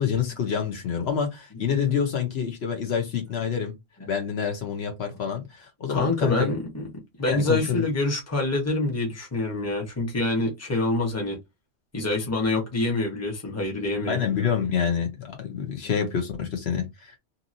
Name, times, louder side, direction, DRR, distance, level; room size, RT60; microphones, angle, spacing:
voice 1, 0.0-3.7 4.1-6.6 7.2-7.8 14.1-17.2, left 7 dB, 70° left, 1.0 m, -27 dB
voice 2, 5.9-6.9 7.2-11.4 11.9-14.5 15.8-15.9, left 2 dB, 15° left, 0.9 m, -26 dB
2.9 x 2.6 x 2.5 m
omnidirectional pair, 1.1 m